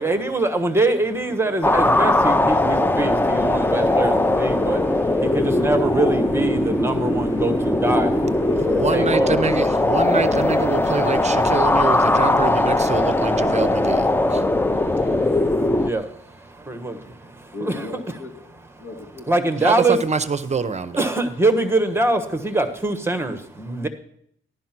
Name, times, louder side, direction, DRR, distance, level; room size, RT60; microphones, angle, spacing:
voice 1, 0.0-8.1 8.7-9.5 10.0-10.1 13.1-13.7 14.0-17.9 19.3-20.0 21.0-23.9, right 2 dB, 10° right, 7 dB, 1.3 m, -24 dB
sound 1, 1.6-15.9, left 2 dB, 10° left, 0.5 m, -20 dB
voice 2, 8.6-14.4 19.6-21.1, right 5 dB, 35° right, 12 dB, 0.7 m, -25 dB
voice 3, 10.2-11.1 17.5-18.5 18.8-19.3, left 2 dB, 85° left, 5 dB, 2.6 m, -36 dB
14.5 x 11.5 x 6.0 m, 0.70 s
wide cardioid pair, 145°, 21 cm